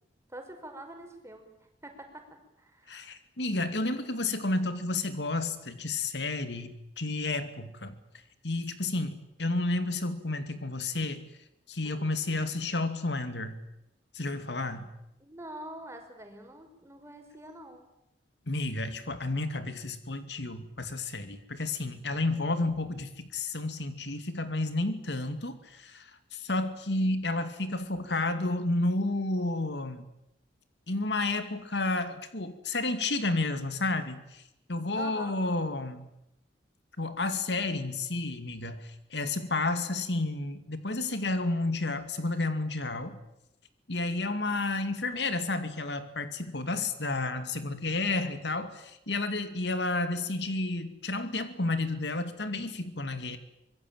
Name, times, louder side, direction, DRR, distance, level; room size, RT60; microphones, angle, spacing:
voice 1, 0.3-1.6 1.8-2.2 2.6-2.9 11.8-12.2 15.2-17.9 34.9-35.4, right 1 dB, 15° right, 4 dB, 5.3 m, -45 dB
voice 2, 2.9-8.0 8.4-11.3 11.7-13.6 14.1-14.9 18.5-30.0 30.9-34.4 34.7-36.1 37.0-43.2 43.9-53.4, left 2 dB, 70° left, 10 dB, 2.4 m, -31 dB
25.0 x 22.5 x 9.1 m, 0.84 s
head